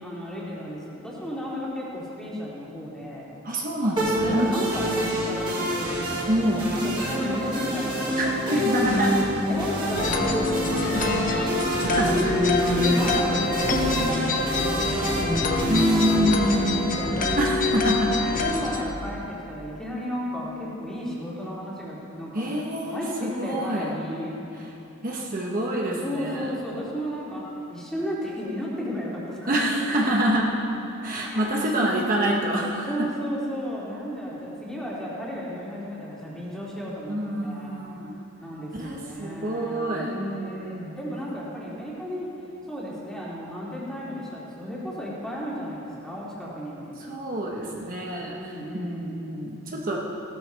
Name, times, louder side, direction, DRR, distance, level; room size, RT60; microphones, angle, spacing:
voice 1, 0.0-3.4 4.2-6.1 6.7-9.1 9.5-12.2 12.7-14.2 14.5-16.1 16.5-17.4 17.7-18.0 18.4-22.5 22.8-24.4 26.0-29.6 31.2-32.0 32.9-37.8 38.4-42.3 42.7-46.9 48.4-49.2, equal, 5° left, -7 dB, 2.8 m, -34 dB
voice 2, 3.4-4.5 6.3-6.7 8.2-9.1 12.0-12.1 15.7-17.0 17.4-18.2 22.3-23.9 25.0-26.5 29.5-30.5 31.0-33.1 37.1-38.2 38.7-40.1 47.0-50.0, right 1 dB, 45° right, -2 dB, 1.2 m, -26 dB
sound 1, 4.0-17.0, equal, 25° right, 2.7 m, -26 dB
sound 2, 10.0-18.8, left 3 dB, 40° left, 0.9 m, -26 dB
17.0 x 12.5 x 3.4 m, 2.9 s
head